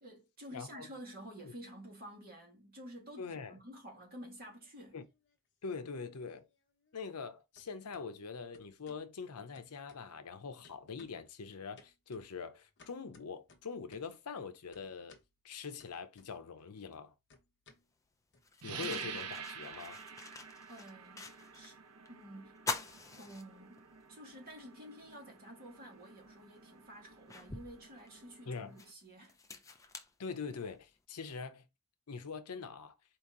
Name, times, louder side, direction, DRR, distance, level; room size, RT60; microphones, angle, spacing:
voice 1, 0.0-5.0 20.7-21.8 22.1-22.6 23.2-29.4, equal, 40° right, 2.1 m, -51 dB
voice 2, 0.5-0.9 1.4-1.5 3.2-3.6 4.9-5.0 5.6-6.5 6.9-15.2 15.4-17.1 18.6-20.0 28.5-28.8 30.2-31.7 32.1-32.9, left 5 dB, 90° left, 0.7 m, -43 dB
sound 1, 4.4-5.4 5.7-7.3 7.5-8.1 8.5-9.1 9.5-10.3 10.6-11.3 11.8-14.2 14.7-15.3 15.8-16.6 16.9-19.8, left 3 dB, 50° left, 1.0 m, -64 dB
sound 2, 17.7-17.8 18.4-21.7 22.0-22.1 22.5-24.0 24.5-24.6 26.0-26.1 26.7-30.9, left 3 dB, 15° left, 0.5 m, -45 dB
sound 3, 18.6-28.9, right 6 dB, 85° right, 0.8 m, -49 dB
4.4 x 2.9 x 3.7 m
head